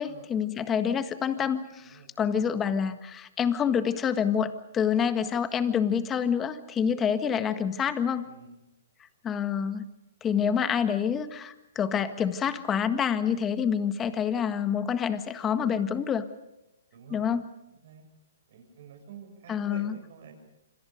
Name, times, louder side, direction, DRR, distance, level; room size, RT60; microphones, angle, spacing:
voice 1, 0.0-8.3 9.2-9.9 10.2-16.2 17.1-17.4 19.5-19.9, left 7 dB, 20° left, 10 dB, 1.7 m, -27 dB
voice 2, 8.2-8.6 16.9-17.2 17.7-18.0 18.5-20.3, right 7 dB, 55° right, 5 dB, 7.2 m, -48 dB
27.0 x 26.0 x 5.2 m, 0.91 s
hypercardioid pair, 130°, 0 cm